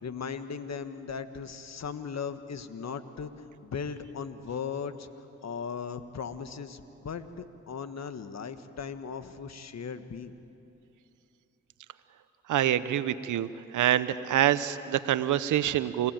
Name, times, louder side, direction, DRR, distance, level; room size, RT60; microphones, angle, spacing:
voice 1, 0.0-3.3 3.6-5.1 5.4-10.3, left 6 dB, 60° left, 10 dB, 1.5 m, -37 dB
voice 2, 12.5-13.5 13.7-16.1, right 12 dB, 80° right, 14 dB, 0.9 m, -26 dB
29.0 x 16.5 x 9.0 m, 2.9 s
supercardioid pair, 45°, 30 cm